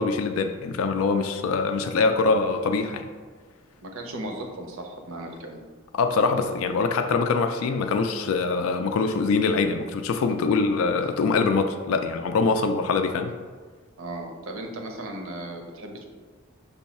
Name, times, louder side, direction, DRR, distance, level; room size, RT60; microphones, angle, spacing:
voice 1, 0.0-3.1 5.9-13.3, left 4 dB, 80° left, 6 dB, 0.3 m, -24 dB
voice 2, 3.8-5.6 14.0-16.0, right 1 dB, 75° right, 3 dB, 0.6 m, -36 dB
5.4 x 2.3 x 4.1 m, 1.5 s
head